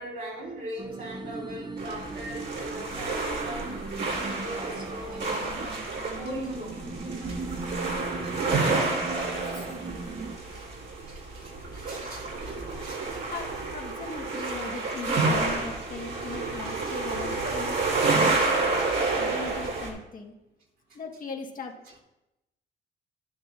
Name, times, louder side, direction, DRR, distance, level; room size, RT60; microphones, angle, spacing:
voice 1, 0.0-3.8 4.1-6.8 7.2-7.4 7.9-8.9 9.5-9.7 11.0-13.5 16.9-17.0 17.5-17.6 18.0-18.4 18.8-18.9 20.9-21.0 21.9-22.0, right 1 dB, 45° right, -2 dB, 2.9 m, -40 dB
sound 1, 0.8-10.4, right 3 dB, 20° right, 0.6 m, -39 dB
sound 2, 1.8-19.9, right 3 dB, 65° right, 3.6 m, -29 dB
voice 2, 13.3-18.6 19.1-20.3 20.9-21.7, left 3 dB, 45° left, 1 dB, 1.4 m, -39 dB
11.0 x 9.9 x 2.5 m, 0.94 s
cardioid pair, 90°, 20 cm